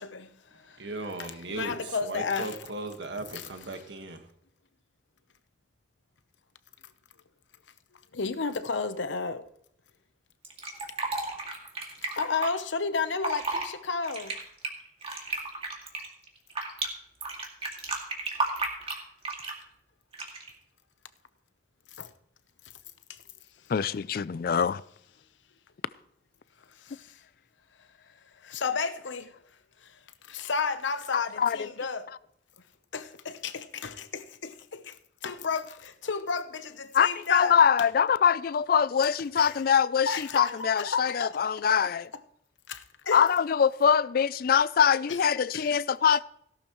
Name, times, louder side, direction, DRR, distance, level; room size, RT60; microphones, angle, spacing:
voice 1, 0.0-0.7 1.2-2.6 3.3-3.5 8.1-9.5 11.2-11.3 12.0-14.4 21.9-22.1 23.1-23.2 26.7-27.2 27.8-27.9 28.4-29.4 29.8-32.1 32.9-37.9 39.3-39.6 40.1-41.8 42.7-43.3 45.1-45.7, left 5 dB, 85° left, 0.9 m, -33 dB
voice 2, 0.8-4.3, right 2 dB, 70° right, 1.5 m, -37 dB
Fill (with liquid), 10.4-12.5 13.1-13.7 14.0-16.9 17.2-19.6 20.1-20.5, right 3 dB, 30° right, 2.2 m, -33 dB
voice 3, 23.7-24.8 31.1-31.7 36.9-42.1 43.1-46.2, left 7 dB, 55° left, 0.4 m, -24 dB
16.5 x 11.5 x 3.1 m
head